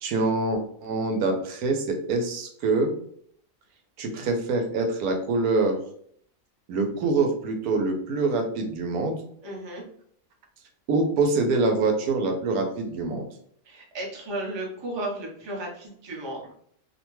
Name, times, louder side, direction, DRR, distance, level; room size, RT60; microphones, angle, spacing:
voice 1, 0.0-2.9 4.0-5.8 6.7-9.2 10.9-13.2, right 3 dB, 90° right, 3 dB, 1.1 m, -25 dB
voice 2, 9.4-9.8 13.6-16.6, right 1 dB, 30° right, -2 dB, 0.5 m, -34 dB
2.8 x 2.2 x 3.0 m, 0.62 s
omnidirectional pair, 1.5 m